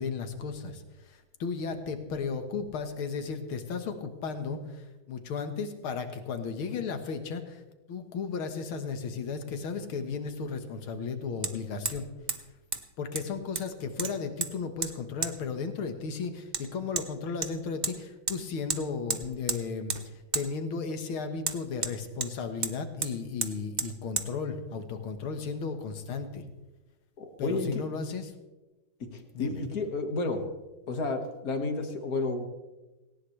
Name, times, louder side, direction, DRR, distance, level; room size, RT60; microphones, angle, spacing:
voice 1, 0.0-7.6 7.9-12.1 13.0-26.4 27.4-28.3 29.3-29.6, left 5 dB, 90° left, 7 dB, 2.3 m, -35 dB
Hammer, 9.5-9.6 11.4-11.5 11.8-12.0 12.3-12.4 12.7-12.8 13.1-13.7 14.0-14.5 14.8-14.9 15.2-15.3 16.5-16.6 17.0-17.1 17.4-17.9 18.3-18.4 18.7-18.8 19.1-19.6 19.9-20.0 20.3-20.5 21.4-22.3 22.6-22.7 23.0-23.1 23.4-23.5 23.8-23.9 24.2-24.3, right 5 dB, 45° right, 0.6 m, -31 dB
voice 2, 27.2-27.8 29.0-30.4 30.9-32.4, left 3 dB, 45° left, 5 dB, 2.1 m, -31 dB
18.0 x 17.5 x 3.3 m, 1.1 s
omnidirectional pair, 2.2 m